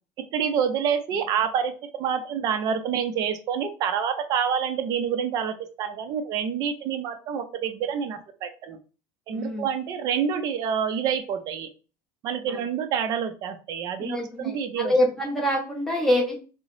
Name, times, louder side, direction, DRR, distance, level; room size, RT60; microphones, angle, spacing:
voice 1, 0.2-8.8 9.3-11.7 12.2-14.9, right 7 dB, 35° right, 8 dB, 0.4 m, -27 dB
voice 2, 9.3-9.7 12.5-12.6 14.0-16.3, left 1 dB, 5° left, -2 dB, 0.7 m, -25 dB
3.6 x 2.0 x 3.0 m, 0.35 s
cardioid pair, 180°, 12 cm